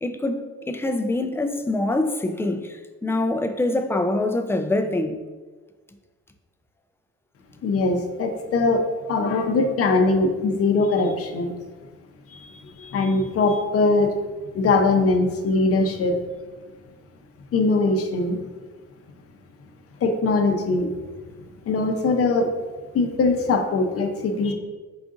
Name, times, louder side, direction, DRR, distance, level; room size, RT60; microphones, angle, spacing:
voice 1, 0.0-5.1, left 2 dB, 10° left, 7 dB, 0.3 m, -25 dB
voice 2, 7.6-11.5 12.3-14.1 14.5-16.2 17.5-18.4 20.0-20.9 21.7-22.5 22.9-24.5, left 3 dB, 50° left, 3 dB, 0.6 m, -21 dB
4.9 x 2.5 x 3.6 m, 1.4 s
cardioid pair, 90°, 30 cm